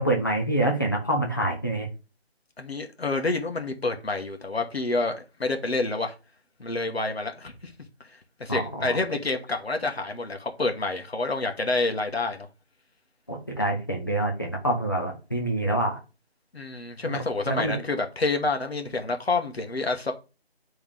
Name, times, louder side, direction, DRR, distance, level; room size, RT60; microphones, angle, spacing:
voice 1, 0.0-1.9 8.5-9.0 13.3-16.0 17.0-17.2 17.5-17.7, right 1 dB, 20° left, 0.8 m, -26 dB
voice 2, 2.6-6.1 6.6-7.7 8.4-12.5 16.5-20.1, left 3 dB, 70° left, 1.4 m, -28 dB
9.5 x 3.5 x 3.5 m
figure-of-eight pair, 170°, 32 cm